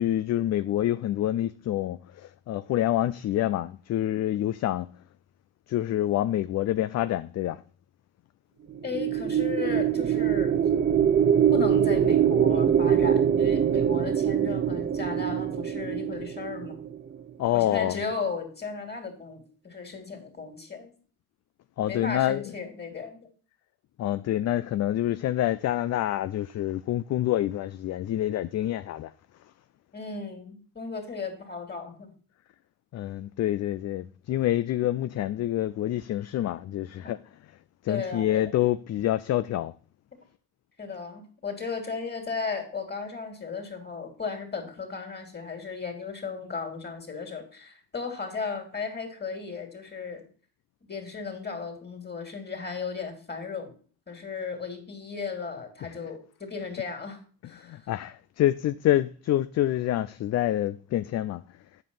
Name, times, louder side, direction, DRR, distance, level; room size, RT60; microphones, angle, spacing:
voice 1, 0.0-4.9 5.7-7.6 17.4-18.0 21.8-22.7 24.0-29.1 32.9-37.2 37.8-39.7 55.8-56.1 57.4-61.4, left 13 dB, 40° left, 0.4 m, -27 dB
sound 1, 8.7-17.2, right 8 dB, 25° right, 0.5 m, -23 dB
voice 2, 8.8-10.5 11.5-16.8 17.5-20.9 21.9-23.2 29.9-32.1 37.9-38.6 40.8-50.2 50.9-53.7 54.1-57.2 57.4-57.8, left 5 dB, 25° left, 3.0 m, -35 dB
8.2 x 5.2 x 5.5 m
supercardioid pair, 80°, 41 cm